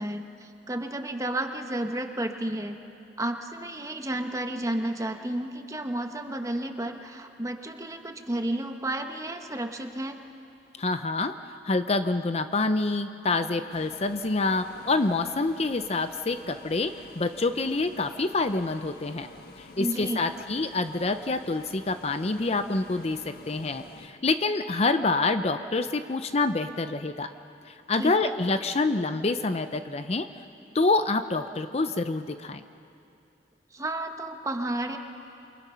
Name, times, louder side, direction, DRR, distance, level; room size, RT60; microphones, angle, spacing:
voice 1, 0.0-2.8 3.2-10.2 19.8-20.2 28.0-28.2 33.7-35.0, right 1 dB, 20° right, 5 dB, 1.2 m, -32 dB
voice 2, 10.8-11.3 11.6-19.3 19.8-27.3 27.7-30.3 30.7-32.6, left 3 dB, 35° left, 9 dB, 0.6 m, -27 dB
sound 1, 13.7-24.1, left 3 dB, 60° left, 1.3 m, -49 dB
28.5 x 23.5 x 5.7 m, 2.7 s
head